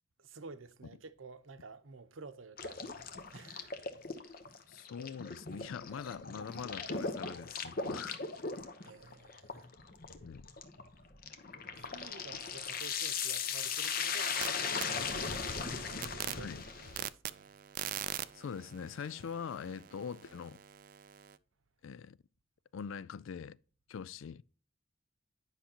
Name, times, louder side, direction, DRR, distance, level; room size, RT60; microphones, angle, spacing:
voice 1, 0.2-2.8 3.3-3.8 8.8-9.7 11.7-16.5 16.8-17.5, right 4 dB, 80° right, 0.8 m, -51 dB
sound 1, 2.6-17.0, left 5 dB, 45° left, 0.9 m, -38 dB
voice 2, 4.7-8.2 10.2-10.5 16.4-16.6 18.3-20.6 21.8-22.2 22.7-23.6 23.9-24.4, left 6 dB, 80° left, 0.4 m, -43 dB
sound 2, 14.0-14.5 14.8-21.4, right 11 dB, 45° right, 0.3 m, -44 dB
10.0 x 5.7 x 2.9 m
head